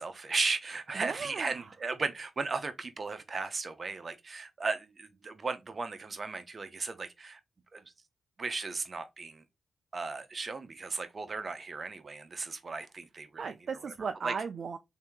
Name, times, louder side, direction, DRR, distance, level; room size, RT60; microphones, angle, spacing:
voice 1, 0.0-7.4 7.7-7.9 8.4-9.4 9.9-13.4 13.8-13.9 14.2-14.3, right 4 dB, 40° right, 0.9 m, -36 dB
voice 2, 1.0-1.6 13.4-14.8, right 5 dB, 60° right, 0.4 m, -36 dB
3.4 x 2.8 x 4.6 m
cardioid pair, 65°, 0 cm